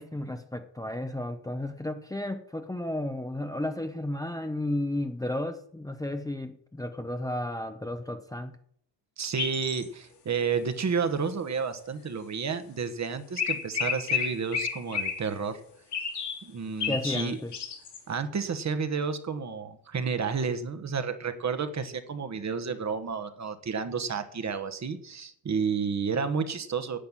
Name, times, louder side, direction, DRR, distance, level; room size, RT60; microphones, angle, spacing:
voice 1, 0.0-8.5 16.8-17.5, left 1 dB, 10° left, 7 dB, 0.8 m, -33 dB
voice 2, 9.2-15.6 16.4-17.4 18.1-27.0, right 5 dB, 40° right, 10 dB, 1.3 m, -31 dB
sound 1, 9.4-9.8 12.5-12.6 13.4-15.2 15.9-16.4 16.8-18.0, left 7 dB, 70° left, 3.2 m, -31 dB
10.0 x 8.7 x 7.4 m, 0.65 s
cardioid pair, 135°, 42 cm